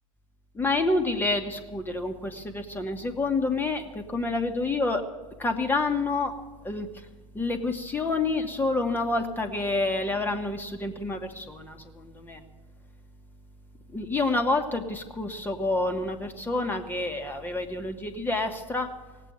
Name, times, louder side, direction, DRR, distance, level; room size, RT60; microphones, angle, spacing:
voice 1, 0.5-5.0 5.4-6.3 6.6-6.9 7.3-12.4 13.9-18.9, left 2 dB, 10° left, 4 dB, 1.5 m, -28 dB
17.5 x 8.2 x 9.2 m, 1.2 s
hypercardioid pair, 105°, 18 cm